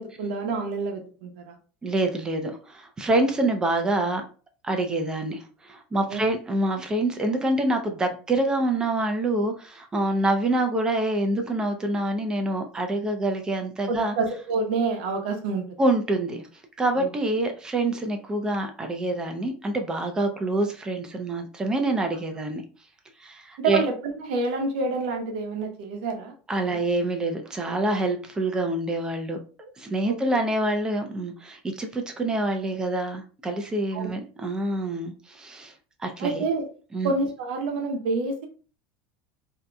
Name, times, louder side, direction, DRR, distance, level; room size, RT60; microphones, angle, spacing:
voice 1, 0.0-1.5 6.1-6.2 13.9-15.6 17.0-17.1 23.6-23.9 24.3-26.3 26.6-26.8 30.1-30.2 33.9-34.1 36.2-36.6 37.0-38.5, right 3 dB, 80° right, 4 dB, 0.9 m, -28 dB
voice 2, 1.8-4.2 4.6-14.1 15.8-16.5 16.8-22.6 23.2-23.8 26.5-35.7 36.0-36.4 36.9-37.1, right 2 dB, 15° right, 5 dB, 0.5 m, -26 dB
3.8 x 2.8 x 2.3 m, 0.38 s
supercardioid pair, 140°, 5 cm